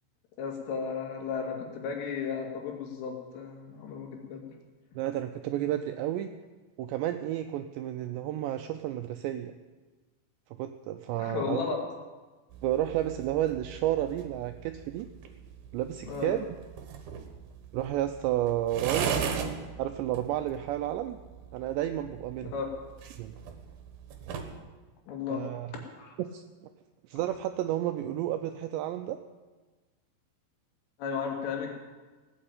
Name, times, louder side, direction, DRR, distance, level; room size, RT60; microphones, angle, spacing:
voice 1, 0.4-4.5 11.2-11.8 16.1-16.4 22.4-22.7 25.1-25.5 25.7-26.1 31.0-31.8, left 6 dB, 85° left, 1 dB, 5.0 m, -34 dB
voice 2, 5.0-6.3 6.8-9.5 10.6-11.6 12.6-15.1 15.7-16.5 17.7-19.3 19.8-21.2 21.5-22.5 23.2-23.4 25.3-25.7 26.2-26.4 27.1-29.2, right 12 dB, 85° right, 8 dB, 2.5 m, -31 dB
sound 1, 12.5-24.6, right 7 dB, 65° right, 2.5 m, -39 dB
17.5 x 8.9 x 8.7 m, 1.3 s
omnidirectional pair, 5.6 m